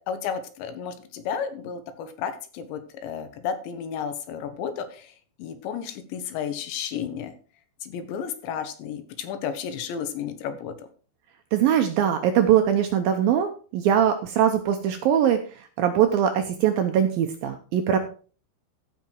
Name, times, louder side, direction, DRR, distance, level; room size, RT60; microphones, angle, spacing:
voice 1, 0.0-5.1 5.4-7.3 7.8-10.7, left 7 dB, 85° left, 9 dB, 3.5 m, -32 dB
voice 2, 11.5-15.4 15.8-18.0, right 9 dB, 80° right, 6 dB, 2.2 m, -21 dB
15.0 x 5.8 x 4.6 m, 0.38 s
omnidirectional pair, 5.0 m